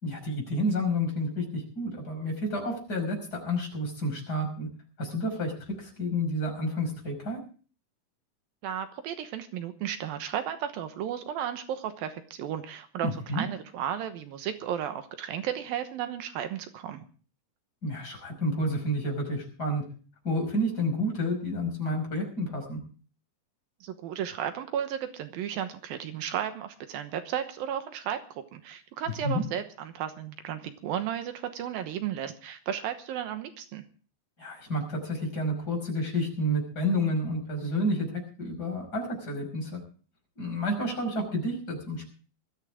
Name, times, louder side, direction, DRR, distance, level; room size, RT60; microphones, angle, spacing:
voice 1, 0.0-4.7 5.0-7.4 13.0-13.4 17.8-19.8 20.2-22.8 29.2-29.4 34.4-38.1 38.4-39.8 40.4-42.1, equal, 25° left, 1 dB, 5.9 m, -30 dB
voice 2, 8.6-17.1 23.8-28.2 28.5-33.8, right 9 dB, 80° right, 9 dB, 2.9 m, -34 dB
20.5 x 14.0 x 3.6 m, 0.40 s
omnidirectional pair, 4.2 m